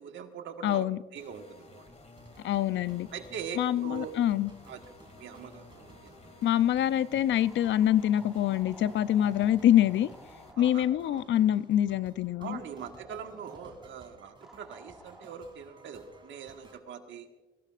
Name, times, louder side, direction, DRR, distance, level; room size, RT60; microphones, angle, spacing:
voice 1, 0.0-0.9 1.1-1.8 3.1-4.1 4.7-4.8 5.2-6.1 10.6-11.2 12.4-17.3, right 7 dB, 75° right, 5 dB, 1.6 m, -42 dB
voice 2, 0.6-1.0 2.4-3.1 3.6-4.5 6.4-10.1 10.6-12.6, left 11 dB, 70° left, 16 dB, 0.5 m, -25 dB
sound 1, 1.2-10.5, left 3 dB, 35° left, 2.4 m, -54 dB
sound 2, 2.2-16.8, right 2 dB, 25° right, 2.6 m, -56 dB
sound 3, 7.4-11.4 12.7-13.9 14.4-15.4, equal, ahead, 1.4 m, -53 dB
25.0 x 16.0 x 2.5 m, 1.3 s
cardioid pair, 90°, 20 cm